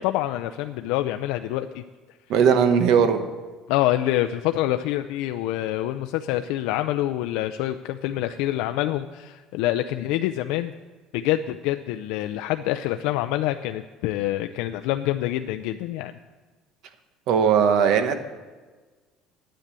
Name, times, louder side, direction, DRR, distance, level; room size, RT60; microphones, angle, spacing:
voice 1, 0.0-1.8 3.7-10.7 11.1-16.2, left 14 dB, 80° left, 7 dB, 0.5 m, -26 dB
voice 2, 2.3-3.2 17.3-18.1, right 7 dB, 50° right, 9 dB, 1.1 m, -18 dB
10.0 x 8.2 x 9.0 m, 1.3 s
cardioid pair, 175°, 0 cm